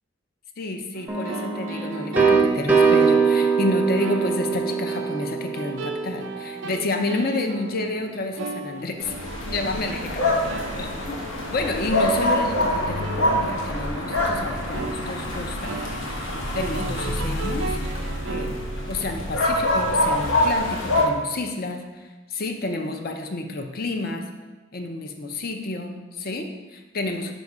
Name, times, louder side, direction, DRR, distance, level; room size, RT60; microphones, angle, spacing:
voice 1, 0.6-9.1 9.4-16.2 16.5-17.8 18.3-18.6 18.9-24.3 24.7-27.3, left 2 dB, 50° left, 5 dB, 0.6 m, -30 dB
sound 1, 0.9-19.9, right 4 dB, 70° right, 0.5 m, -37 dB
sound 2, 1.1-6.8, right 5 dB, 10° right, 0.6 m, -22 dB
sound 3, 9.0-21.1, left 1 dB, 85° left, 1.1 m, -25 dB
5.3 x 5.2 x 4.8 m, 1.2 s
head